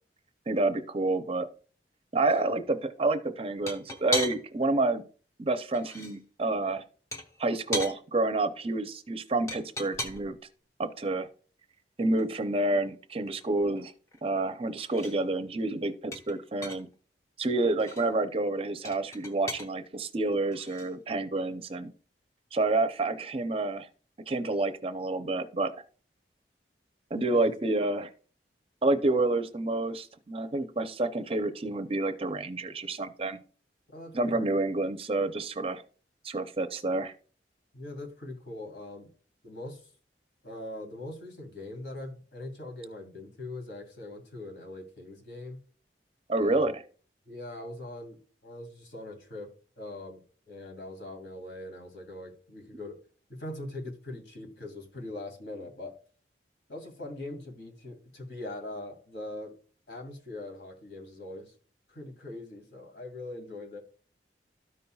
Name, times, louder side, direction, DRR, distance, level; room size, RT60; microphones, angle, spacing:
voice 1, 0.5-1.5 2.1-5.0 5.4-6.8 7.4-10.3 10.8-11.3 12.0-13.9 14.2-16.9 17.4-21.9 22.5-23.9 24.3-25.7 27.1-28.1 28.8-33.4 34.1-35.8 36.2-37.1 46.3-46.7, right 2 dB, 35° right, 9 dB, 0.5 m, -29 dB
sound 1, 2.3-2.4 3.7-4.6 5.6-6.2 7.1-8.0 9.5-10.4 12.2-12.3 12.6-12.7 13.0-14.5 14.8-15.2 16.1-16.9 17.7-18.1 18.9-19.7 20.5-20.9, left 1 dB, 15° left, 0.9 m, -37 dB
voice 2, 33.9-34.4 37.7-39.1 39.4-39.8 40.4-45.6 46.4-46.7 47.3-49.5 49.8-50.2 50.5-53.0 53.3-55.9 56.7-59.5 59.9-61.5 61.9-63.8, left 2 dB, 70° left, 2 dB, 2.2 m, -41 dB
13.0 x 5.4 x 2.3 m, 0.40 s
head